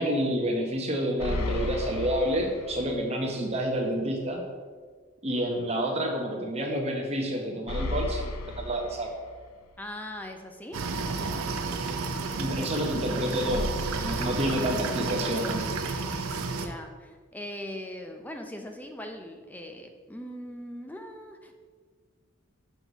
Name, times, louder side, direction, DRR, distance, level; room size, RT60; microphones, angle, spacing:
voice 1, 0.0-4.4 5.2-9.1 12.3-13.7 13.9-15.6, equal, 30° right, 1 dB, 0.9 m, -29 dB
sound 1, 1.2-3.2 3.5-3.6 7.7-9.7 13.5-15.5, left 2 dB, 80° left, 0.6 m, -35 dB
voice 2, 9.8-10.9 14.1-14.4 16.5-21.5, left 1 dB, 10° left, 4 dB, 0.5 m, -40 dB
sound 2, 10.7-16.7, right 4 dB, 80° right, 0.6 m, -31 dB
6.3 x 5.7 x 4.0 m, 1.5 s
head